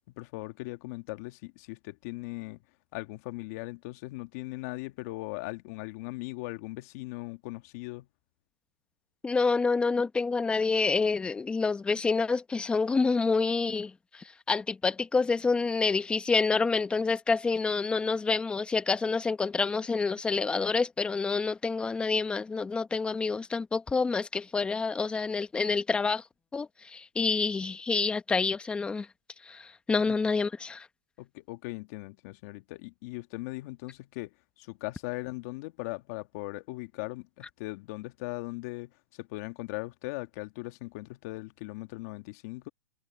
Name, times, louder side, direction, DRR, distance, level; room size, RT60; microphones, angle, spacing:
voice 1, 0.2-2.6 2.9-8.1 30.1-30.2 31.2-34.3 34.6-42.7, left 21 dB, 45° left, 1.9 m, -39 dB
voice 2, 9.2-26.2 26.5-29.1 29.5-30.9, left 4 dB, 10° left, 0.9 m, -28 dB
hypercardioid pair, 145°, 11 cm